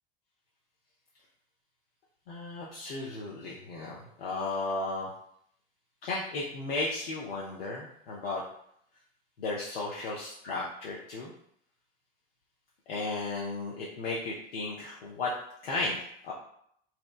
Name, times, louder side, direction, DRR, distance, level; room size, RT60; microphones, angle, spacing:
voice 1, 2.3-5.1 6.0-8.4 9.4-11.3 12.9-15.3 15.6-16.0 16.2-16.3, left 3 dB, 80° left, -5 dB, 0.5 m, -34 dB
2.8 x 2.0 x 2.3 m, 0.69 s
figure-of-eight pair, 70°, 29 cm